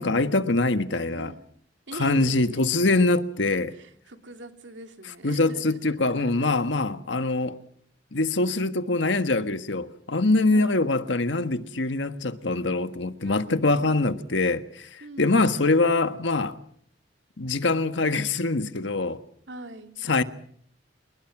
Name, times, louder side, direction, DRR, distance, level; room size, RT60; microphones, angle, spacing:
voice 1, 0.0-1.3 2.0-3.7 5.2-7.6 8.1-16.6 17.4-19.2 20.1-20.2, left 2 dB, 85° left, 1.5 m, -24 dB
voice 2, 1.9-2.6 3.7-6.6 10.5-10.9 13.2-14.1 15.0-15.6 19.5-19.9, right 2 dB, 80° right, 2.9 m, -42 dB
27.5 x 21.0 x 6.1 m
head